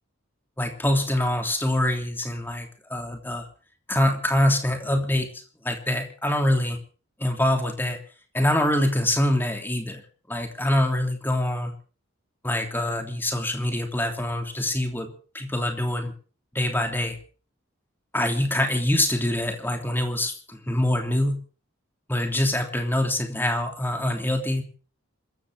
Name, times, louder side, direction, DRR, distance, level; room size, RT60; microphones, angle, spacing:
voice 1, 0.6-3.5 3.9-6.8 7.2-8.0 8.3-10.0 10.3-11.7 12.4-16.1 16.5-17.2 18.1-21.4 22.1-24.6, left 1 dB, 10° left, 4 dB, 3.1 m, -25 dB
26.5 x 14.5 x 3.7 m, 0.39 s
head